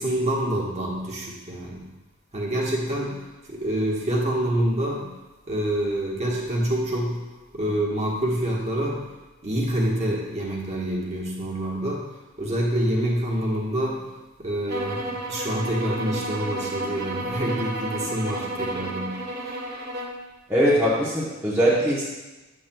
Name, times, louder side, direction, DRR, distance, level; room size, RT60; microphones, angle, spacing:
voice 1, 0.0-1.9 2.3-5.1 5.5-7.2 7.5-9.1 9.4-12.1 12.4-14.1 14.4-15.0 15.3-19.6, right 1 dB, 30° right, -3 dB, 1.2 m, -27 dB
sound 1, 14.7-20.2, right 1 dB, 50° right, 0.8 m, -31 dB
voice 2, 20.5-22.0, equal, 10° right, -8 dB, 0.8 m, -21 dB
8.1 x 7.5 x 2.2 m, 1.1 s
head